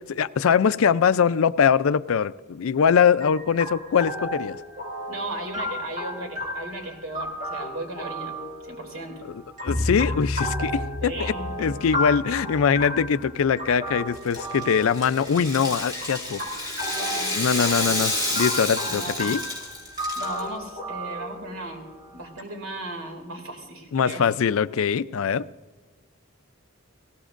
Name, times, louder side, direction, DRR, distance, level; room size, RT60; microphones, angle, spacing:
voice 1, 0.2-4.6 9.6-10.8 11.2-16.4 17.3-19.4 23.9-25.4, left 7 dB, 75° left, 15 dB, 0.4 m, -22 dB
sound 1, 3.2-22.4, equal, 35° right, 5.2 m, -34 dB
voice 2, 5.1-8.4 8.6-9.2 11.0-11.7 16.9-17.4 17.7-18.0 18.8-19.2 20.2-21.9 22.1-24.3, right 1 dB, 70° right, 3 dB, 2.6 m, -36 dB
sound 2, 9.7-14.1, left 1 dB, 5° left, 3.9 m, -32 dB
Rattle (instrument), 14.2-20.4, left 1 dB, 20° right, 4.1 m, -30 dB
20.0 x 17.5 x 2.5 m, 1.4 s
head